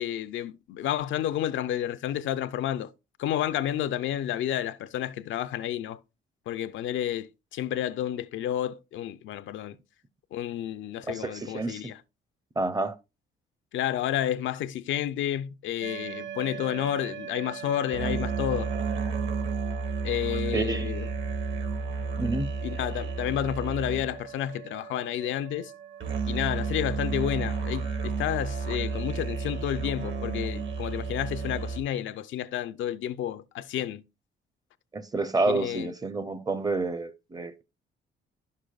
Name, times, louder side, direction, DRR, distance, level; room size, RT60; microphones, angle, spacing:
voice 1, 0.0-2.9 3.2-6.0 6.5-9.8 10.3-12.0 13.7-18.7 20.0-21.1 22.6-25.7 26.3-34.0 35.5-35.9, left 11 dB, 75° left, 0.5 m, -30 dB
voice 2, 11.1-11.9 12.6-13.0 20.5-20.9 22.2-22.5 34.9-37.6, right 3 dB, 20° right, 0.6 m, -29 dB
Didgeridu monk, 15.8-31.8, right 5 dB, 65° right, 1.6 m, -32 dB
9.9 x 6.5 x 2.4 m
cardioid pair, 90°, 20 cm